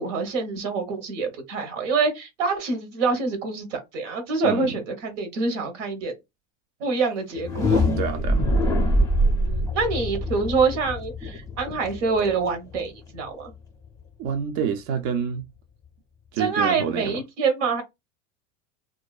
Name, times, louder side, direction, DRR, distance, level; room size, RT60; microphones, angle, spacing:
voice 1, 0.0-6.1 6.8-7.8 9.2-13.5 16.4-17.8, right 4 dB, 90° right, 0.9 m, -26 dB
voice 2, 4.4-4.8 8.0-8.4 14.2-15.4 16.3-17.2, right 7 dB, 65° right, 0.5 m, -28 dB
sound 1, 7.3-13.2, equal, 10° left, 0.4 m, -24 dB
2.5 x 2.2 x 2.3 m
supercardioid pair, 140°, 36 cm